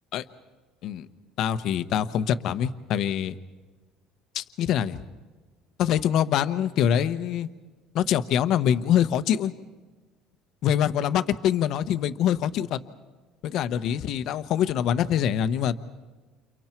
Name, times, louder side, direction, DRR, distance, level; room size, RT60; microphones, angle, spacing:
voice 1, 1.4-3.3 4.3-5.0 5.8-7.5 7.9-9.5 10.6-12.8 13.4-15.7, left 9 dB, 45° left, 12 dB, 0.9 m, -24 dB
29.5 x 29.5 x 4.5 m, 1.3 s
cardioid pair, 170°, 0 cm